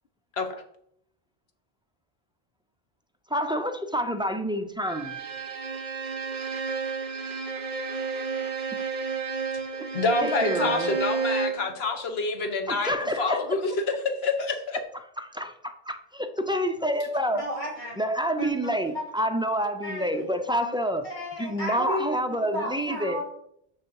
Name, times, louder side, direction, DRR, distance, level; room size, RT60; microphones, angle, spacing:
voice 1, 3.3-5.2 9.7-9.9 10.2-11.0 12.7-13.6 15.2-17.5 18.0-21.1 21.4-23.2, equal, 10° right, 0.3 m, -28 dB
Bowed string instrument, 4.9-11.7, right 5 dB, 50° right, 0.9 m, -31 dB
voice 2, 9.9-13.7 14.0-14.8, left 3 dB, 80° left, 1.4 m, -27 dB
voice 3, 17.3-18.0 18.4-19.0 19.8-20.4 21.0-22.1 22.4-23.2, equal, 50° left, 2.9 m, -33 dB
6.5 x 6.3 x 4.6 m
omnidirectional pair, 1.0 m